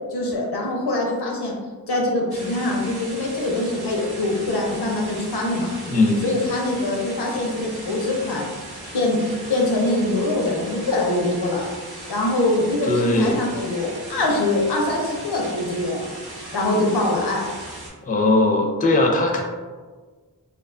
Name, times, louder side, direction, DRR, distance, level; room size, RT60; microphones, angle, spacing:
voice 1, 0.1-1.5 1.9-5.7 6.2-8.5 8.9-9.2 9.5-11.6 12.1-16.0 16.5-17.4, left 2 dB, 90° left, -1 dB, 0.6 m, -23 dB
sound 1, 2.3-17.9, right 1 dB, 85° right, 0.7 m, -38 dB
voice 2, 5.9-6.3 12.9-13.4 18.0-19.4, left 2 dB, 25° left, 1 dB, 0.4 m, -19 dB
2.4 x 2.2 x 2.4 m, 1.4 s
wide cardioid pair, 40°, 38 cm